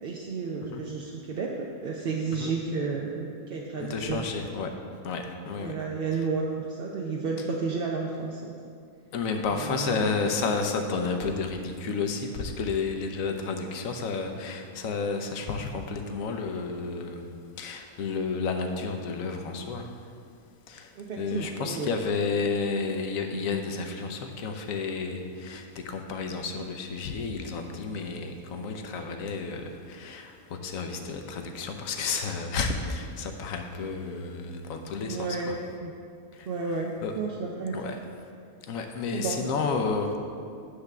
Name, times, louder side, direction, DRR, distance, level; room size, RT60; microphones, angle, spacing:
voice 1, 0.0-4.3 5.6-8.5 9.5-10.0 21.0-21.9 35.0-35.9 36.5-38.0 39.1-39.4, right 4 dB, 55° right, -1 dB, 0.7 m, -32 dB
voice 2, 3.8-4.7 5.0-5.7 9.1-17.3 17.6-19.9 20.7-35.6 36.3-37.1 37.7-38.0 38.7-40.2, left 4 dB, 65° left, 5 dB, 1.1 m, -31 dB
9.8 x 3.5 x 6.6 m, 2.3 s
omnidirectional pair, 1.6 m